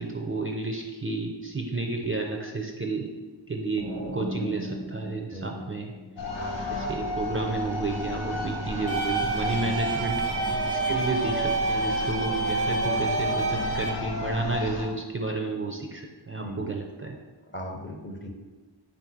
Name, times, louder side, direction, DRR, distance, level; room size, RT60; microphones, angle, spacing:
voice 1, 0.0-3.1 3.5-3.9 4.1-5.9 6.7-10.2 10.5-17.2, right 3 dB, 30° right, 2 dB, 0.4 m, -31 dB
sound 1, 3.8-6.6, equal, 85° right, 0.9 m, -37 dB
sound 2, 6.2-14.8, left 2 dB, 75° left, 0.8 m, -32 dB
sound 3, 8.9-13.9, right 3 dB, 45° left, 0.9 m, -28 dB
voice 2, 9.4-9.7 16.4-16.7 17.5-18.3, equal, 25° left, 2 dB, 0.5 m, -38 dB
3.5 x 2.6 x 4.4 m, 1.3 s
wide cardioid pair, 50°, 45 cm